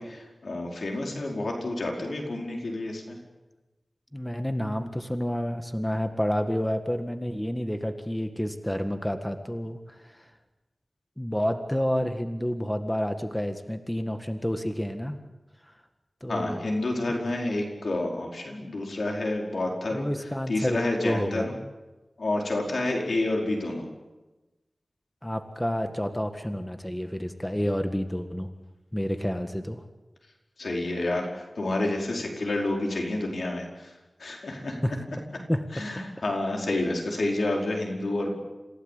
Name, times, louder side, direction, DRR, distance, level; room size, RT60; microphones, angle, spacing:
voice 1, 0.0-3.2 16.3-20.1 20.5-21.5 22.2-23.8 30.6-33.9 34.2-34.8 35.7-38.4, left 2 dB, 85° left, 0 dB, 4.8 m, -29 dB
voice 2, 4.1-9.8 11.2-15.2 16.2-16.6 19.9-20.8 21.0-21.5 25.2-28.5 28.9-29.8 34.8-35.0 35.5-35.6, equal, 10° left, 7 dB, 1.8 m, -29 dB
27.5 x 16.5 x 8.4 m, 1.1 s
wide cardioid pair, 70°, 0 cm